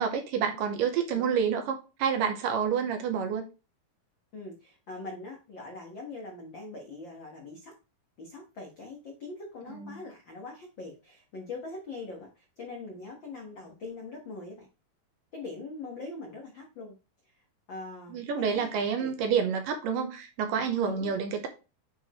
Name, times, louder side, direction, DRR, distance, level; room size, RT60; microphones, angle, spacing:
voice 1, 0.0-3.5 9.7-10.0 18.1-21.5, right 7 dB, 75° right, 2.3 m, -28 dB
voice 2, 4.3-7.7 8.2-14.7 15.3-16.9 17.7-19.2 19.4-19.5 20.9-21.1, left 3 dB, 70° left, 1.1 m, -42 dB
8.6 x 4.5 x 3.0 m
omnidirectional pair, 4.4 m